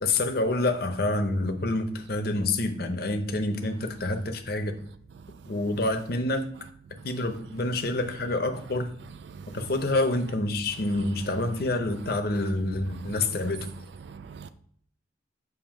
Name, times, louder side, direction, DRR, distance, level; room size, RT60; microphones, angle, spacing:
voice 1, 0.0-4.8 5.5-6.5 7.0-8.9 9.5-13.7, left 2 dB, 50° left, 0.7 m, -27 dB
voice 2, 11.0-11.6 12.0-12.1 12.9-13.7 14.0-14.5, right 6 dB, 65° right, 0.3 m, -43 dB
7.3 x 2.7 x 5.1 m
head